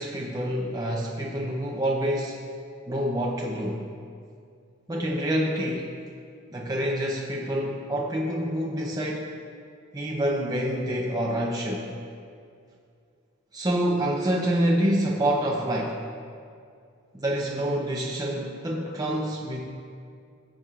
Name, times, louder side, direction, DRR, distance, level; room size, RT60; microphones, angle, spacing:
voice 1, 0.0-2.4 2.9-3.8 4.9-5.9 6.5-9.3 9.9-11.9 13.5-16.0 17.1-19.7, right 1 dB, 15° right, -3 dB, 0.6 m, -27 dB
19.0 x 7.3 x 2.4 m, 2.3 s
head